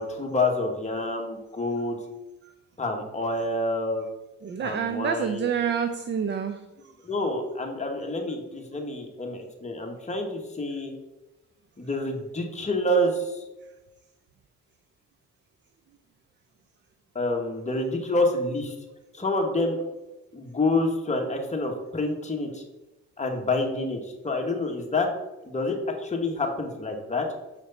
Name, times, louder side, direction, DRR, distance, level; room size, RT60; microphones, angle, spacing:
voice 1, 0.0-2.0 2.8-4.1 4.6-5.5 7.0-10.9 11.8-13.4 17.1-18.7 19.1-19.8 20.3-22.6 23.2-24.0 24.2-25.1 25.4-27.3, left 2 dB, 25° left, 1 dB, 1.5 m, -27 dB
voice 2, 4.4-7.1, right 7 dB, 40° right, 9 dB, 0.5 m, -28 dB
6.6 x 4.9 x 4.0 m, 1.0 s
cardioid pair, 90°, 30 cm